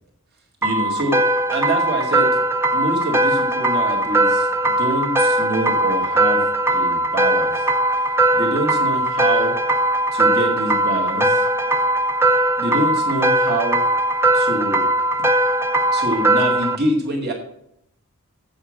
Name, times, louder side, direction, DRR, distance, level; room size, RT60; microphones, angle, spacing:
sound 1, 0.6-16.8, right 1 dB, 10° right, 0.6 m, -19 dB
voice 1, 0.6-1.2 1.5-2.4 2.7-7.7 8.3-9.6 10.1-11.5 12.6-13.8 14.3-14.9 15.9-17.3, right 1 dB, 45° right, -1 dB, 2.4 m, -25 dB
8.2 x 6.4 x 7.7 m, 0.75 s
head